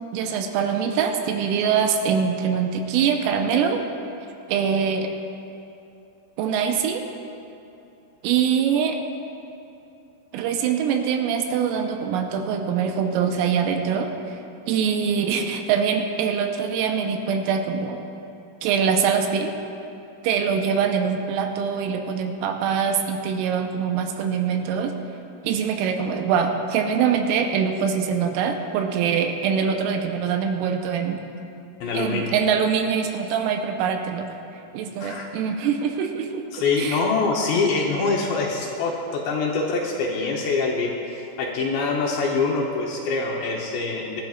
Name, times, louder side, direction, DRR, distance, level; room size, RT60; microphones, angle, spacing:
voice 1, 0.1-3.8 4.5-5.1 6.4-7.0 8.2-9.0 10.3-14.4 14.7-18.0 18.6-19.5 20.2-24.9 25.4-31.2 31.9-34.3 34.7-36.4 36.8-37.0, right 7 dB, 85° right, 4 dB, 3.4 m, -23 dB
voice 2, 31.8-32.3 35.0-35.3 36.5-44.2, left 4 dB, 75° left, -1 dB, 2.8 m, -24 dB
24.5 x 12.0 x 2.4 m, 2.8 s
omnidirectional pair, 5.9 m